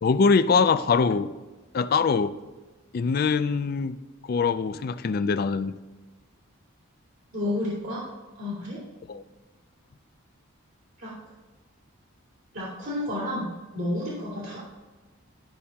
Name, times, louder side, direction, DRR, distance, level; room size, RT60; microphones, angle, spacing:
voice 1, 0.0-1.3 1.7-2.3 2.9-4.0 4.3-5.8 9.1-9.2, left 5 dB, 45° left, 13 dB, 0.3 m, -23 dB
voice 2, 7.3-8.0 8.4-8.8 11.0-11.1 12.5-14.7, left 1 dB, 70° right, -9 dB, 2.3 m, -31 dB
12.0 x 5.5 x 2.8 m, 1.2 s
head